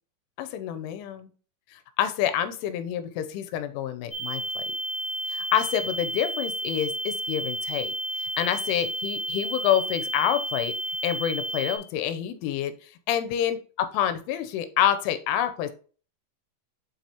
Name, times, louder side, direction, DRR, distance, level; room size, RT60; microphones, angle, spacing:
voice 1, 0.4-1.3 1.7-4.6 5.3-7.9 8.2-10.7 11.0-15.7, left 10 dB, 85° left, 10 dB, 3.2 m, -27 dB
sound 1, 4.1-11.8, right 1 dB, 15° left, 1.9 m, -31 dB
7.3 x 5.8 x 2.9 m, 0.40 s
omnidirectional pair, 5.5 m